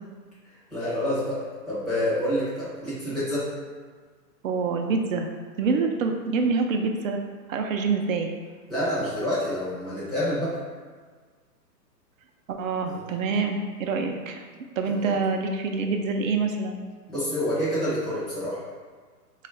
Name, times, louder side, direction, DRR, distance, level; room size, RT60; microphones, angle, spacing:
voice 1, 0.7-3.5 8.7-10.6 12.9-13.0 14.9-15.2 17.1-18.6, equal, ahead, -13 dB, 0.5 m, -28 dB
voice 2, 4.4-5.3 5.6-7.2 7.5-8.3 12.5-14.4 14.8-16.8, right 4 dB, 55° right, 4 dB, 0.5 m, -26 dB
3.0 x 2.4 x 4.2 m, 1.5 s
hypercardioid pair, 140°, 49 cm